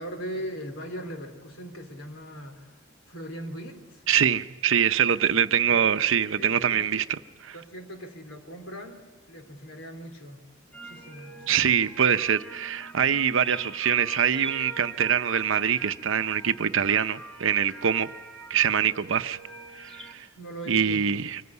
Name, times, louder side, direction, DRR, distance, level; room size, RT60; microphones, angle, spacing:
voice 1, 0.0-2.8 3.1-4.0 5.7-5.9 6.4-7.0 7.5-9.0 9.3-11.8 20.4-21.1, equal, 75° left, 3.4 m, -40 dB
voice 2, 4.1-7.6 11.5-18.1 18.5-19.4 19.8-20.3 20.7-21.4, right 8 dB, 70° right, 0.7 m, -24 dB
sound 1, 10.7-20.1, right 2 dB, 5° left, 2.3 m, -45 dB
24.5 x 15.0 x 9.6 m
head